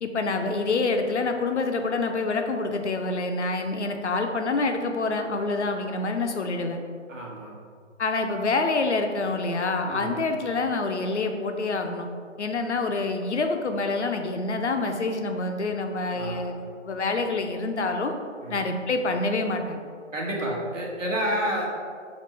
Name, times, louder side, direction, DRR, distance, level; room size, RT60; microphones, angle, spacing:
voice 1, 0.0-6.8 8.0-12.1 12.4-18.1 18.5-19.8, left 3 dB, 65° left, 5 dB, 0.5 m, -27 dB
voice 2, 7.1-7.5 9.8-10.2 16.1-16.5 18.4-18.6 20.1-21.7, equal, 80° right, -3 dB, 1.2 m, -30 dB
5.0 x 2.6 x 3.2 m, 2.2 s
figure-of-eight pair, 175°, 38 cm